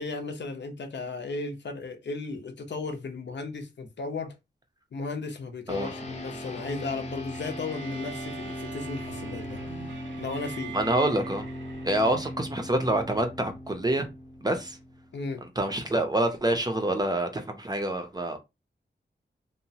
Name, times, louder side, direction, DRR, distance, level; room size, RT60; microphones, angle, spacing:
voice 1, 0.0-4.4 4.9-9.6 10.2-10.8 15.1-15.5, left 3 dB, 70° left, 0.6 m, -35 dB
sound 1, 5.7-15.3, left 1 dB, 35° left, 0.7 m, -39 dB
sound 2, 7.3-12.6, right 10 dB, 85° right, 0.4 m, -44 dB
voice 2, 10.7-11.5 11.8-14.1 14.4-14.8 15.4-18.4, right 1 dB, 20° right, 0.5 m, -27 dB
2.9 x 2.1 x 2.7 m
wide cardioid pair, 100°, 19 cm